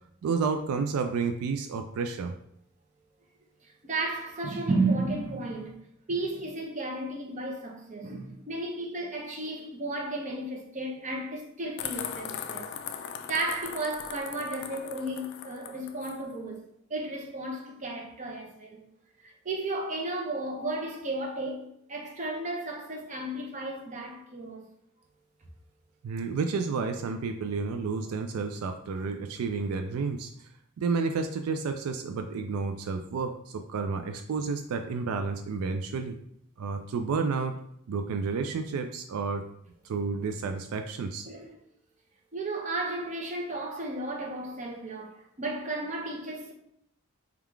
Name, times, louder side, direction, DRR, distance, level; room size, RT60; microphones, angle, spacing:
voice 1, 0.2-2.3 26.0-30.5 30.8-36.2 36.6-37.6 37.9-39.4 39.8-41.3, right 4 dB, 80° right, 0.3 m, -31 dB
voice 2, 3.6-5.7 6.1-12.7 13.0-18.8 19.2-24.6 41.3-41.6 42.3-46.5, right 2 dB, 35° right, 0.7 m, -33 dB
sound 1, 11.8-16.2, left 8 dB, 55° left, 0.3 m, -39 dB
3.6 x 2.4 x 4.5 m
head